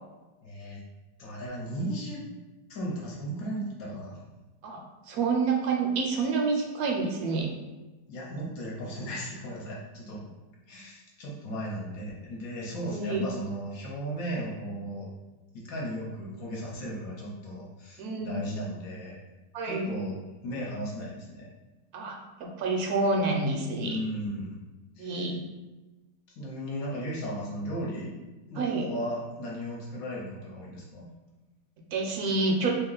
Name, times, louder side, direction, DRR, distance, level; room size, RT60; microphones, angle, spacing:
voice 1, 0.4-0.8 1.2-2.2 2.7-4.2 8.1-10.4 10.7-15.1 15.5-19.2 19.6-20.2 20.4-21.5 23.8-24.6 25.0-25.3 26.4-28.1 28.5-31.1, equal, 65° left, -3 dB, 1.2 m, -36 dB
voice 2, 4.6-7.5 12.9-13.2 18.0-18.4 19.5-19.9 21.9-24.0 25.0-25.4 28.6-28.8 31.9-32.7, right 3 dB, 75° right, 1 dB, 1.0 m, -28 dB
2.9 x 2.9 x 3.8 m, 1.1 s
omnidirectional pair, 1.8 m